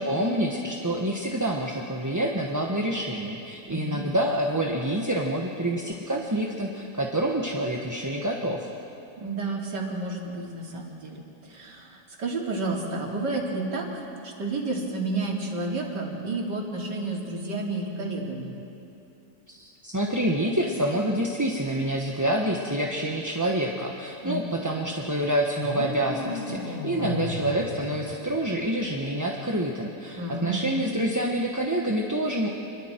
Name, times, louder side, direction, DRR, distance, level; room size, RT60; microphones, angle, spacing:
voice 1, 0.0-8.7 19.5-32.5, right 1 dB, 10° right, -1 dB, 1.0 m, -27 dB
voice 2, 3.7-4.0 9.2-18.5 24.2-24.4 27.0-27.3 30.2-30.6, right 2 dB, 90° right, -2 dB, 3.5 m, -31 dB
sound 1, 25.6-28.7, left 1 dB, 40° left, 2.4 m, -35 dB
28.5 x 22.5 x 4.5 m, 2.7 s
omnidirectional pair, 1.8 m